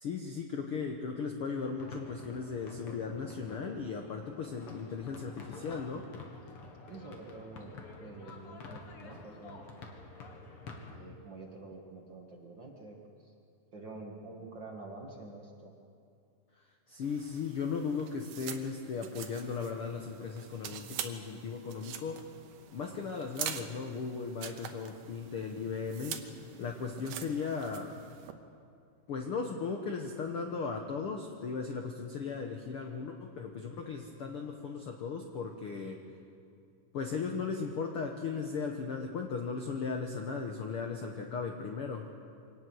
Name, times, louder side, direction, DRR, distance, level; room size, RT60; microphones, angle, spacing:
voice 1, 0.0-6.1 16.6-22.3 22.7-26.3 26.6-28.0 29.1-36.0 36.9-42.1, left 5 dB, 65° left, 3 dB, 1.4 m, -37 dB
sound 1, 1.7-11.0, left 3 dB, 50° left, 2.3 m, -49 dB
voice 2, 6.9-9.6 10.9-13.3 13.7-15.7, right 3 dB, 45° right, 0 dB, 1.8 m, -47 dB
sound 2, 17.0-28.3, right 9 dB, 75° right, 2.5 m, -45 dB
24.5 x 18.0 x 6.3 m, 2.5 s
omnidirectional pair, 4.0 m